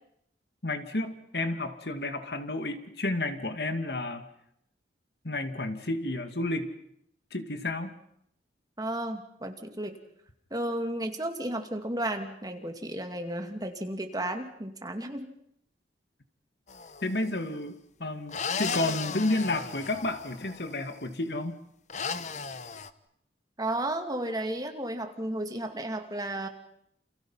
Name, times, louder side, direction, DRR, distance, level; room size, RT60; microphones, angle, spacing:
voice 1, 0.6-4.3 5.2-6.7 7.3-7.9 17.0-17.7 18.0-21.6, left 2 dB, 65° left, 8 dB, 2.3 m, -31 dB
voice 2, 8.8-10.0 10.5-15.3 23.6-26.5, right 1 dB, 20° right, 5 dB, 2.5 m, -33 dB
sound 1, 16.7-17.2 18.3-20.7 21.9-22.9, left 5 dB, 45° left, 1.1 m, -35 dB
29.0 x 28.5 x 5.7 m, 0.73 s
head